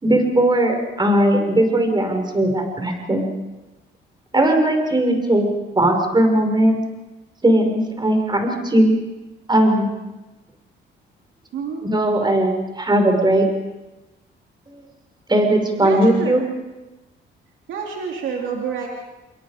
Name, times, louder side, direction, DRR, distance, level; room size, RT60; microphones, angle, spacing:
voice 1, 0.0-3.2 4.3-5.5 5.8-6.8 7.4-8.9 9.5-9.9 11.8-13.4 15.3-16.4, right 1 dB, 20° right, 4 dB, 5.7 m, -18 dB
voice 2, 11.5-11.8 15.8-16.4 17.7-18.9, right 6 dB, 80° right, 0 dB, 3.1 m, -28 dB
28.5 x 22.5 x 5.2 m, 1.1 s
cardioid pair, 90°, 20 cm